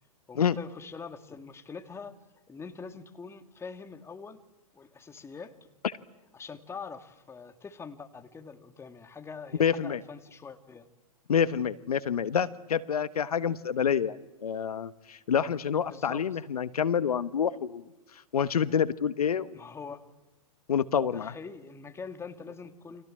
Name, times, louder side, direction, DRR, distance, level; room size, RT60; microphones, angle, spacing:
voice 1, 0.3-2.2 2.5-4.4 4.7-5.5 6.3-10.9 15.8-16.3 19.5-20.1 21.1-23.0, left 5 dB, 15° left, 8 dB, 2.2 m, -43 dB
voice 2, 9.6-10.0 11.3-17.9 18.1-19.5 20.7-21.3, left 7 dB, 75° left, 15 dB, 1.2 m, -27 dB
30.0 x 25.0 x 7.6 m, 1.1 s
hypercardioid pair, 110°, 19 cm